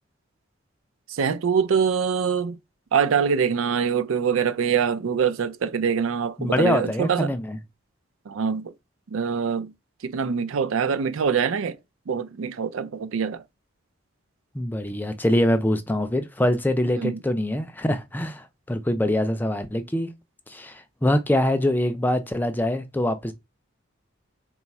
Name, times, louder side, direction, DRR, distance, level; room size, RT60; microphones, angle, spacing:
voice 1, 1.1-2.6 2.9-7.3 8.3-8.7 9.1-9.7 10.0-11.8 12.1-13.4 17.0-17.2, right 6 dB, 85° right, 0.4 m, -24 dB
voice 2, 6.4-7.6 14.5-20.1 20.5-23.3, left 1 dB, 10° left, 0.3 m, -24 dB
3.9 x 2.3 x 4.1 m
head